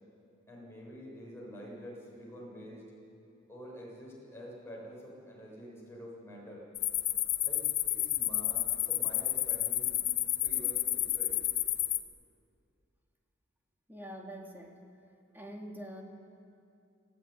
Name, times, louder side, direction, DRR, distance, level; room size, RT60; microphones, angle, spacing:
voice 1, 0.5-2.9 3.5-6.6 7.4-7.6 7.9-10.0 10.4-11.3, equal, 15° left, -4 dB, 7.6 m, -47 dB
sound 1, 6.8-12.0, left 13 dB, 55° left, 1.2 m, -31 dB
voice 2, 13.9-14.7 15.3-16.0, equal, 10° right, 1 dB, 2.7 m, -44 dB
27.5 x 16.5 x 9.8 m, 2.5 s
head